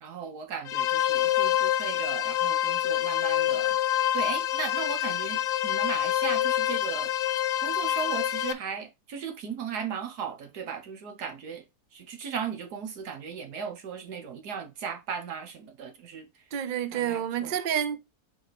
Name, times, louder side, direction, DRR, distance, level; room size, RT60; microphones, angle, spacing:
voice 1, 0.0-3.8 4.1-7.1 7.6-11.6 11.9-16.3 16.9-17.6, right 7 dB, 80° right, 1.7 m, -36 dB
sound 1, 0.7-8.5, left 12 dB, 70° left, 0.9 m, -26 dB
voice 2, 16.5-18.0, right 9 dB, 60° right, 0.5 m, -29 dB
4.5 x 4.3 x 5.0 m
omnidirectional pair, 1.7 m